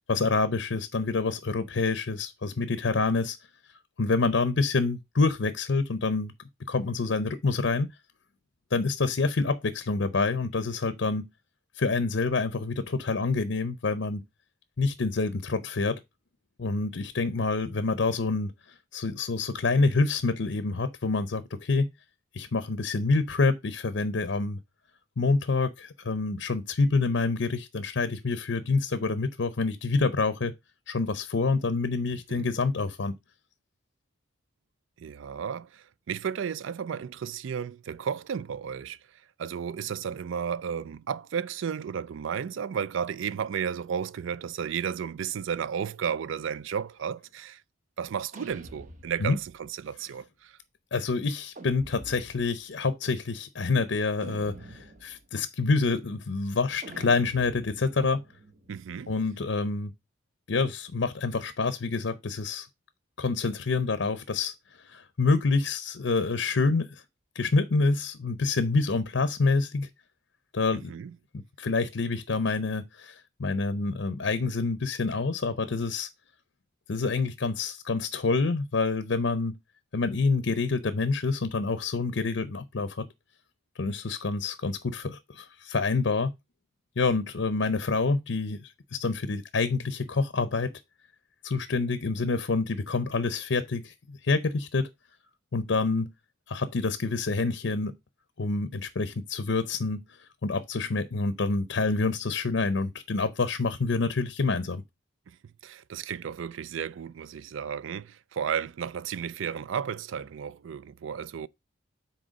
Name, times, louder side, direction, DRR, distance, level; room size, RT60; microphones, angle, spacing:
voice 1, 0.0-3.4 4.0-6.3 6.7-7.9 8.7-11.3 11.8-14.2 14.8-16.0 16.6-18.5 18.9-21.9 22.3-24.6 25.2-30.5 30.9-33.2 49.2-49.4 50.9-58.2 59.1-59.9 60.5-62.7 63.2-67.0 67.3-69.9 70.5-70.9 71.3-76.1 76.9-79.5 79.9-83.1 83.8-86.3 87.0-90.7 91.4-94.9 95.5-96.1 96.5-97.9 98.4-104.8, left 3 dB, 65° left, 0.6 m, -27 dB
voice 2, 35.0-39.0 39.4-47.6 48.0-50.6 58.7-59.1 70.7-71.2 105.3-105.4 105.6-111.5, right 7 dB, 70° right, 0.4 m, -33 dB
sound 1, 48.3-49.6 51.5-52.6 54.2-55.3 56.8-59.5, right 2 dB, 40° right, 0.9 m, -47 dB
6.3 x 4.2 x 5.1 m
head